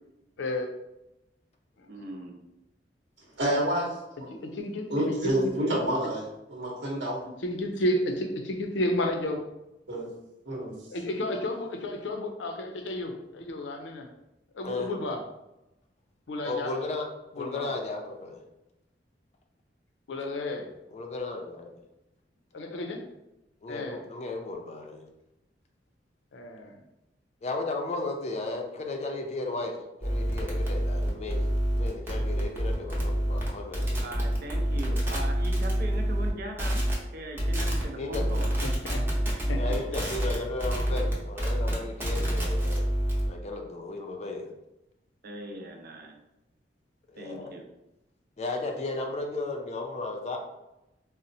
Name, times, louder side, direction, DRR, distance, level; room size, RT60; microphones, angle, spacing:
voice 1, 0.4-0.7 1.8-1.9 4.3-5.5 7.4-9.4 10.9-14.1 14.5-15.2 16.3-16.7 17.4-17.7 20.1-20.7 22.5-23.0 23.7-24.0 26.3-26.8 38.6-39.0 39.5-39.6, left 1 dB, 90° left, 0.5 m, -32 dB
voice 2, 1.9-2.4 34.0-36.8 37.1-38.5 39.4-39.8 45.2-46.2 47.2-47.6, right 1 dB, 55° right, 0.5 m, -39 dB
voice 3, 3.4-3.9 4.2-4.3 4.9-6.2 6.5-7.2 9.9-10.0 10.5-10.7, right 1 dB, 75° right, 0.9 m, -28 dB
voice 4, 16.4-17.1 17.3-18.4 20.9-21.8 23.6-25.0 27.4-29.8 30.0-31.4 31.8-34.0 38.0-38.2 39.6-42.9 43.3-44.5 47.1-47.6 48.4-50.4, left 3 dB, 40° left, 0.4 m, -34 dB
sound 1, 30.0-36.3 36.6-36.9 37.4-37.8 38.1-43.3, equal, 15° right, 0.7 m, -27 dB
4.0 x 2.0 x 2.6 m
head